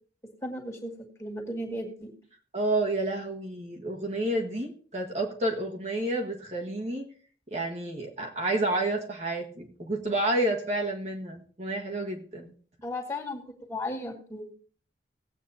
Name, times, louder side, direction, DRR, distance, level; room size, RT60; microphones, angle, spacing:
voice 1, 0.4-0.9 1.2-2.1 12.8-13.4 13.7-14.5, left 1 dB, 15° left, 0 dB, 2.1 m, -35 dB
voice 2, 2.5-7.1 7.5-12.5, right 1 dB, 40° right, 0 dB, 1.4 m, -30 dB
18.0 x 8.2 x 2.8 m, 0.43 s
head